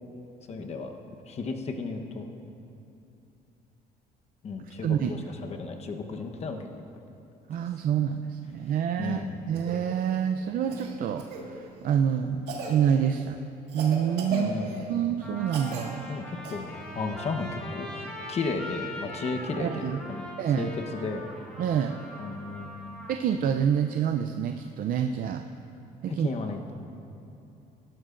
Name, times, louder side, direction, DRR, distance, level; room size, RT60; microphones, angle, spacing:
voice 1, 0.5-0.9 1.3-2.3 4.4-6.6 9.0-9.3 14.3-14.9 16.1-16.7 16.9-17.9 18.3-20.2 20.6-21.3 22.2-22.9 26.1-26.7, left 4 dB, 40° left, 4 dB, 1.0 m, -34 dB
voice 2, 4.8-5.3 7.5-9.2 9.5-11.2 11.5-13.4 13.7-14.5 14.9-16.1 19.6-20.0 20.4-20.7 21.6-22.0 23.1-25.4 26.0-26.3, right 8 dB, 55° right, 6 dB, 0.5 m, -27 dB
Cough, 9.5-9.8 10.7-11.4 12.5-12.8 13.7-14.9 15.5-15.9 16.4-16.5 18.4-18.5, right 4 dB, 85° right, 1.8 m, -37 dB
Trumpet, 15.2-23.2, left 1 dB, 5° left, 2.4 m, -41 dB
18.0 x 12.0 x 2.5 m, 2.7 s
cardioid pair, 110°, 17 cm